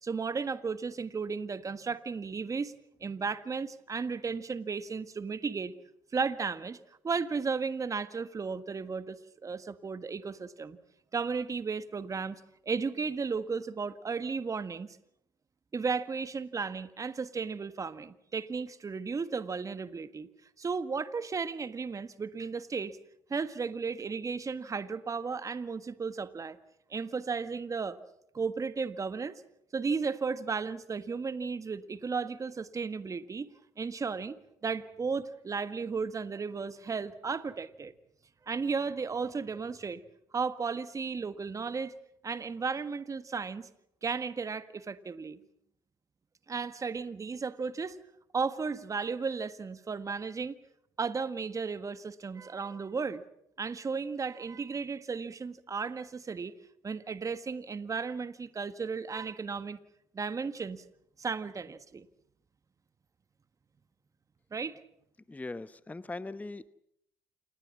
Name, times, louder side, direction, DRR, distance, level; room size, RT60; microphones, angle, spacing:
voice 1, 0.0-2.7 3.0-5.7 6.1-6.8 7.0-9.2 9.4-10.8 11.1-15.0 15.7-20.3 20.6-23.0 23.3-26.6 26.9-28.0 28.3-29.3 29.7-33.5 33.8-34.4 34.6-37.9 38.5-40.0 40.3-41.9 42.2-43.7 44.0-45.4 46.5-48.0 48.3-50.5 51.0-53.2 53.6-56.5 56.8-59.8 60.1-60.8 61.2-62.0 64.5-64.8, right 5 dB, 30° right, 12 dB, 1.5 m, -34 dB
voice 2, 65.3-66.7, left 2 dB, 15° left, 14 dB, 0.9 m, -40 dB
28.0 x 20.5 x 7.4 m, 0.77 s
hypercardioid pair, 65°, 11 cm